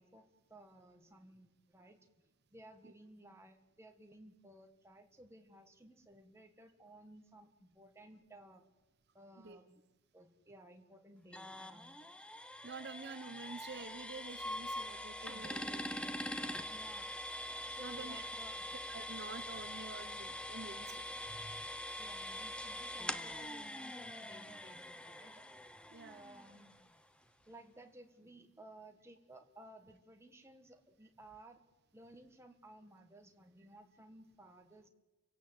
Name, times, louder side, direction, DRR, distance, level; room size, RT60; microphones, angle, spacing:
voice 1, 0.0-2.1 2.5-8.6 9.1-9.8 10.1-11.9 15.2-16.2 16.7-17.1 17.6-18.7 22.0-25.4 25.7-26.8 27.5-31.6 31.9-34.9, right 1 dB, 10° right, 5 dB, 1.7 m, -57 dB
sound 1, 11.3-27.0, left 1 dB, 5° left, 0.8 m, -44 dB
voice 2, 12.6-15.8 17.8-18.3 18.9-21.1 21.4-21.6 25.9-26.2, right 4 dB, 50° right, 10 dB, 1.0 m, -48 dB
29.5 x 17.0 x 8.1 m, 1.2 s
head